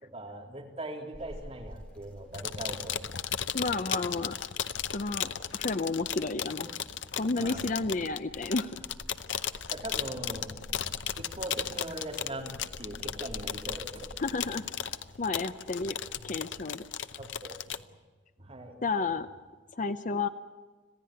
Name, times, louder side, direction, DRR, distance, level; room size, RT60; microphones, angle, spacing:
voice 1, 0.0-3.2 7.4-7.8 9.7-14.2 15.1-15.2 17.2-17.9 18.4-18.8, right 1 dB, 35° right, 0 dB, 3.7 m, -41 dB
sound 1, 1.1-16.2, equal, 5° left, 3.6 m, -51 dB
sound 2, 2.3-17.8, left 9 dB, 80° left, 0.8 m, -36 dB
voice 2, 3.5-4.4 4.9-6.7 7.1-8.8 14.2-14.6 15.2-16.0 16.2-16.8 18.8-19.3 19.7-20.3, left 3 dB, 45° left, 10 dB, 0.6 m, -31 dB
26.5 x 16.0 x 9.9 m, 1.4 s
head